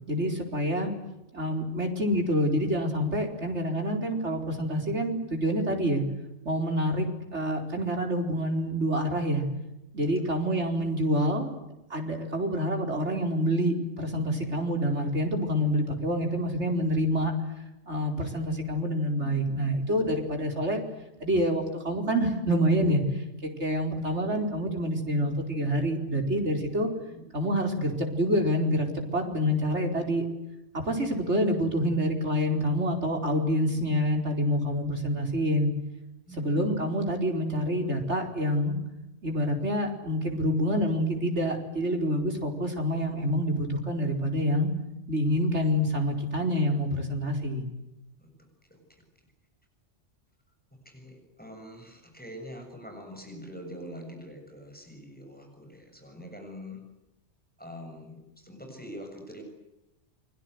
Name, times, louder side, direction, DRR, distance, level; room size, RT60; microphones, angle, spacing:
voice 1, 0.1-0.9 1.3-6.0 6.4-9.4 9.9-11.6 11.9-17.3 17.9-20.8 21.2-26.9 27.3-30.3 30.8-35.7 36.4-38.8 39.2-44.7 45.1-47.7, equal, 80° right, 3 dB, 5.0 m, -27 dB
voice 2, 10.1-10.4 14.2-14.5 27.1-27.2 31.0-31.2 36.3-36.7 48.2-48.3 48.7-49.0 50.9-56.8 57.6-59.4, equal, 10° left, 3 dB, 7.2 m, -44 dB
29.0 x 23.0 x 8.1 m, 0.93 s
omnidirectional pair, 1.2 m